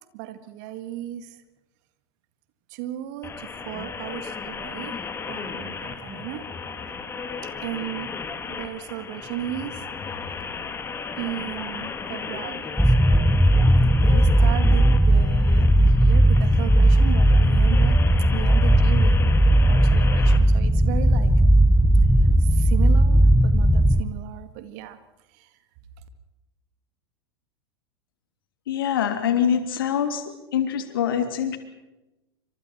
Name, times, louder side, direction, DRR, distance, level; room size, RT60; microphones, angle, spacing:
voice 1, 0.1-1.4 2.7-5.0 5.3-6.5 6.9-7.0 7.4-8.2 8.5-9.9 10.3-10.4 11.2-13.7 13.9-19.2 19.7-21.3 22.4-25.0 25.3-25.5, right 12 dB, 45° right, 11 dB, 2.0 m, -36 dB
sound 1, 3.2-20.4, left 5 dB, 15° left, 2.1 m, -34 dB
sound 2, 12.8-24.0, right 1 dB, ahead, 0.9 m, -17 dB
voice 2, 28.7-30.2 30.5-31.6, left 8 dB, 60° left, 8 dB, 2.9 m, -24 dB
29.0 x 26.0 x 4.5 m, 1.0 s
figure-of-eight pair, 90°, 13 cm